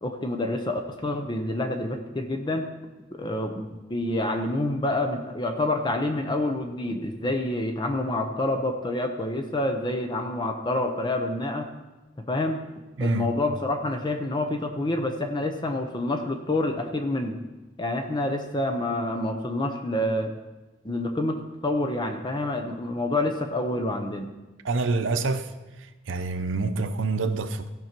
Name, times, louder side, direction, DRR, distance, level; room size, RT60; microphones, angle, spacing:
voice 1, 0.0-2.7 3.1-11.7 12.2-12.6 13.0-17.4 17.8-20.4 20.8-24.3, left 1 dB, 25° left, 0.7 m, -28 dB
voice 2, 13.0-13.3 24.6-25.5 26.1-27.7, right 3 dB, 85° right, 0.7 m, -26 dB
15.5 x 5.5 x 4.4 m
head